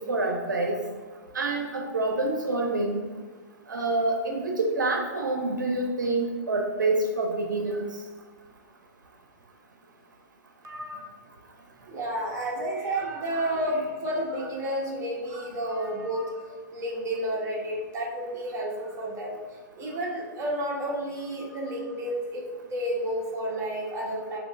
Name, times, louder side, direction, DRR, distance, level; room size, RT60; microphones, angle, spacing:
voice 1, 0.1-0.8 1.3-3.0 3.7-7.9, right 2 dB, 85° right, 2 dB, 0.6 m, -27 dB
voice 2, 10.6-11.1 11.9-24.4, right 1 dB, 30° right, -2 dB, 1.1 m, -31 dB
6.1 x 2.8 x 2.5 m, 1.5 s
hypercardioid pair, 115°, 10 cm